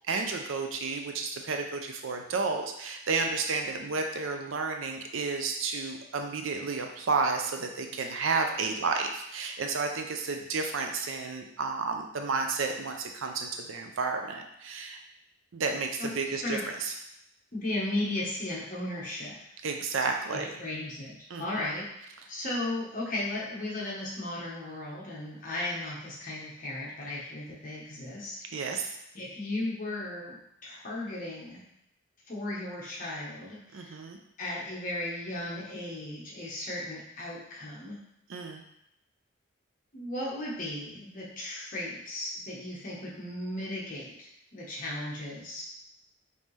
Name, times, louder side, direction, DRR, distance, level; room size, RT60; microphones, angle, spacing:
voice 1, 0.1-15.0 15.5-16.9 19.6-20.5 21.3-21.6 28.5-29.0 33.7-34.2 38.3-38.6, right 4 dB, 70° right, 4 dB, 0.5 m, -31 dB
voice 2, 17.5-19.4 20.3-28.7 29.1-31.6 32.3-33.9 34.4-38.0 39.9-45.7, left 1 dB, 40° left, -5 dB, 1.1 m, -36 dB
5.3 x 2.8 x 3.2 m, 0.80 s
head